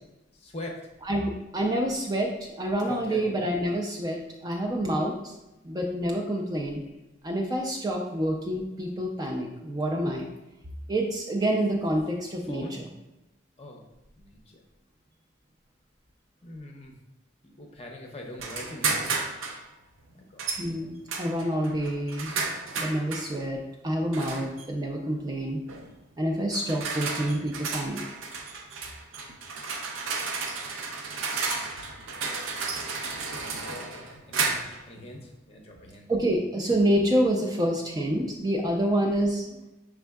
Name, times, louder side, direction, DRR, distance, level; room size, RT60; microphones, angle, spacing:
voice 1, 0.4-0.8 2.9-3.3 12.5-12.8 13.6-13.8 14.2-14.6 16.4-16.9 17.4-19.3 20.1-20.6 30.7-30.9 33.6-34.6 34.9-36.1, left 1 dB, 30° left, 1 dB, 0.6 m, -42 dB
voice 2, 1.1-5.2 5.6-6.8 7.2-10.3 10.9-12.9 20.6-22.3 22.8-23.6 23.8-25.6 26.2-28.0 36.1-39.6, right 1 dB, 20° right, 0 dB, 0.4 m, -27 dB
sound 1, 18.4-19.6 20.4-20.7 21.1-23.3 24.1-24.7 25.7-25.9 26.5-34.8, right 4 dB, 85° right, 0.6 m, -32 dB
6.0 x 3.5 x 2.3 m, 0.97 s
head